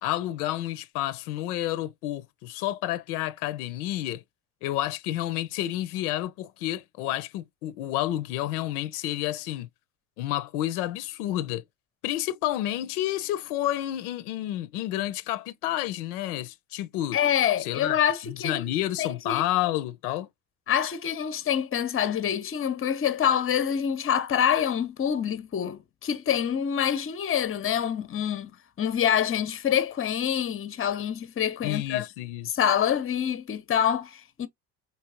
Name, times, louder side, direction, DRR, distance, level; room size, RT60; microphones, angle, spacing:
voice 1, 0.0-4.2 4.6-9.7 10.2-11.6 12.0-17.2 17.6-18.0 18.2-20.3 31.6-32.6, left 14 dB, 75° left, 0.6 m, -30 dB
voice 2, 17.1-18.7 19.0-19.4 20.7-32.1 32.5-34.5, left 9 dB, 30° left, 0.7 m, -26 dB
4.5 x 2.9 x 2.9 m
hypercardioid pair, 50°, 45 cm